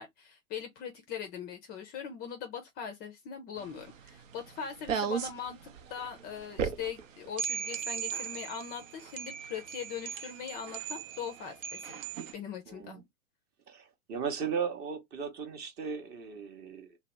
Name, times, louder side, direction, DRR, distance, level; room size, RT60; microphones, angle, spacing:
voice 1, 0.0-12.0 12.3-13.0, left 7 dB, 25° left, 0.5 m, -41 dB
sound 1, 3.6-12.3, right 7 dB, 70° right, 0.7 m, -37 dB
voice 2, 12.7-13.0 13.7-17.0, right 6 dB, 25° right, 0.7 m, -36 dB
2.8 x 2.0 x 3.1 m
hypercardioid pair, 105°, 40 cm